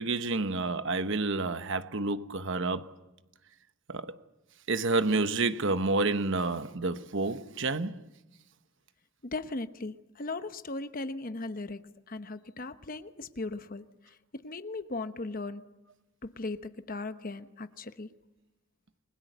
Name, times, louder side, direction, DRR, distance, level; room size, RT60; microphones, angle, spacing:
voice 1, 0.0-2.9 3.9-4.2 4.7-8.0, right 3 dB, 60° right, 1.1 m, -29 dB
voice 2, 9.2-11.8 12.1-15.6 16.2-18.1, left 2 dB, 40° left, 1.0 m, -38 dB
29.0 x 21.5 x 8.0 m
head